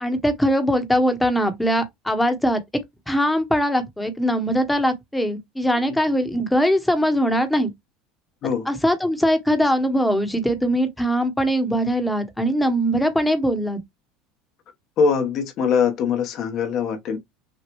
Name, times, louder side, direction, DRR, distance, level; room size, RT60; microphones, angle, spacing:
voice 1, 0.0-2.6 3.1-7.7 8.7-13.8, equal, 5° left, 1.1 m, -21 dB
voice 2, 15.0-17.2, left 6 dB, 50° left, 1.2 m, -22 dB
6.2 x 2.4 x 3.1 m
supercardioid pair, 130°, 0 cm